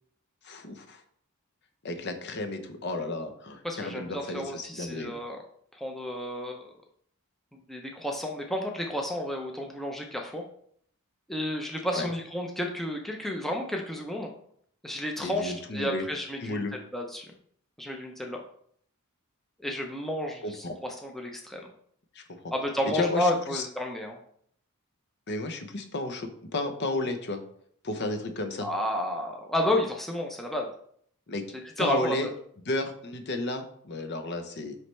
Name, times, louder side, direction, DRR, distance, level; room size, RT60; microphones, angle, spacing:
voice 1, 0.4-1.0 1.8-5.1 11.9-12.1 15.2-16.0 16.4-16.7 20.4-20.7 22.2-22.3 22.9-23.6 25.3-27.4 27.8-28.7 31.3-31.4 31.8-32.3 32.6-34.7, left 2 dB, 50° left, 7 dB, 0.7 m, -32 dB
voice 2, 3.6-5.4 5.7-6.7 7.5-10.4 11.3-14.3 14.8-17.3 17.8-18.4 19.6-21.7 22.5-24.2 28.6-30.7 31.8-32.3, left 1 dB, ahead, 1 dB, 0.6 m, -31 dB
9.4 x 3.3 x 3.2 m, 0.63 s
head